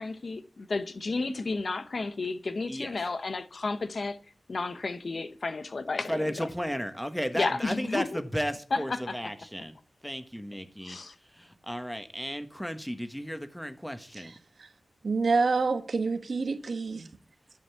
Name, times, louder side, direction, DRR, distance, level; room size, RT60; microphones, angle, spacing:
voice 1, 0.0-4.2 4.5-6.2 7.3-8.2 8.7-9.1 10.8-11.1, left 3 dB, 60° left, 1.0 m, -32 dB
voice 2, 6.1-9.8 10.0-11.0 11.3-14.3, equal, 5° left, 1.4 m, -34 dB
voice 3, 15.0-17.1, right 4 dB, 75° right, 1.2 m, -27 dB
11.5 x 5.4 x 8.2 m
wide cardioid pair, 80°, 0 cm